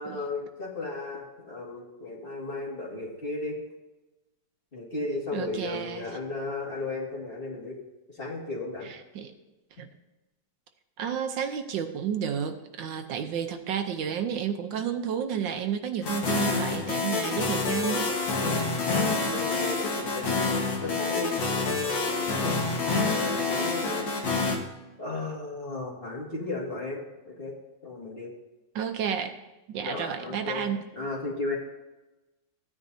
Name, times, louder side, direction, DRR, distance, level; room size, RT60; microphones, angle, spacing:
voice 1, 0.0-3.6 4.7-7.8 8.1-8.9 18.5-18.6 19.1-20.4 20.8-24.1 25.0-27.6 27.8-28.3 29.8-30.7 31.0-31.6, left 3 dB, 30° left, -3 dB, 2.2 m, -35 dB
voice 2, 5.3-6.1 8.9-9.3 9.8-9.9 11.0-18.1 28.7-29.4 29.7-30.8, right 8 dB, 80° right, 6 dB, 1.4 m, -31 dB
sound 1, 16.0-24.6, left 3 dB, 80° left, 2.2 m, -27 dB
15.5 x 9.7 x 2.7 m, 1.1 s
omnidirectional pair, 2.0 m